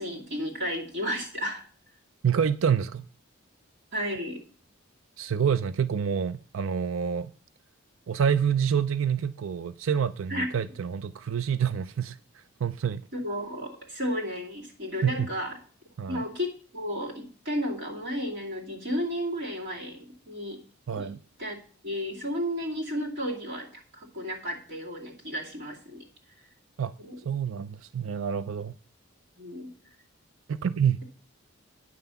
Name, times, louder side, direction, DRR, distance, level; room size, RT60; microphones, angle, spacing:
voice 1, 0.0-1.7 3.9-4.4 10.3-10.5 13.1-15.5 16.1-20.6 21.0-21.1 21.4-21.6 21.8-26.1 27.0-27.2 29.3-29.7, equal, 55° right, 2.6 m, -33 dB
voice 2, 2.2-3.1 5.2-7.3 8.1-12.2 12.6-13.1 15.0-15.3 16.0-16.2 20.9-21.2 26.8-26.9 27.3-28.7 30.5-31.0, right 7 dB, 75° right, 0.4 m, -27 dB
9.6 x 5.6 x 6.9 m
head